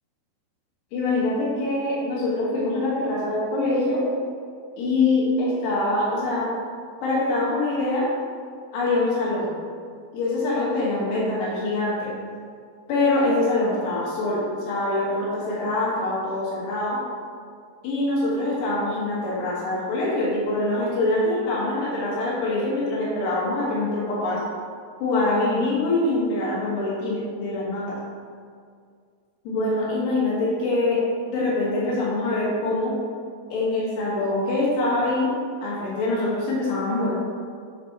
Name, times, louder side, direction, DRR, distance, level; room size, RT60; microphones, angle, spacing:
voice 1, 0.9-4.0 4.8-6.5 7.0-8.1 8.7-9.5 10.1-12.1 12.9-17.0 17.8-24.4 25.0-27.8 29.5-31.0 31.3-32.9 33.5-35.3 35.6-37.1, left 2 dB, 85° left, -6 dB, 3.9 m, -24 dB
8.1 x 6.5 x 3.1 m, 2.2 s
omnidirectional pair, 4.7 m